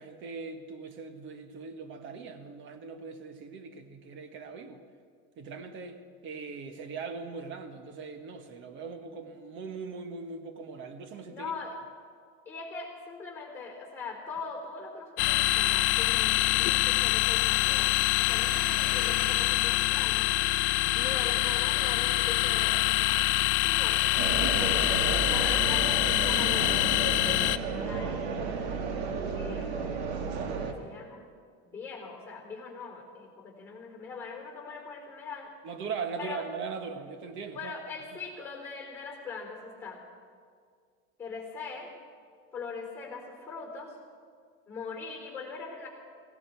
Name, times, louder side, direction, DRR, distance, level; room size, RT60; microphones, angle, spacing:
voice 1, 0.0-4.8 5.4-11.5 35.6-37.7, right 5 dB, 40° right, 8 dB, 1.3 m, -40 dB
voice 2, 11.3-11.8 12.5-20.3 20.8-23.2 23.6-24.8 25.3-28.3 29.3-30.0 30.4-31.2 31.7-35.5 36.2-36.4 37.5-40.0 41.2-41.9 42.5-44.0 44.7-45.9, left 4 dB, 10° left, 1 dB, 3.6 m, -41 dB
sound 1, 15.2-27.6, left 18 dB, 65° left, 0.6 m, -25 dB
sound 2, 24.2-30.7, right 5 dB, 90° right, 1.7 m, -33 dB
18.5 x 15.5 x 4.5 m, 2.1 s
supercardioid pair, 150°, 31 cm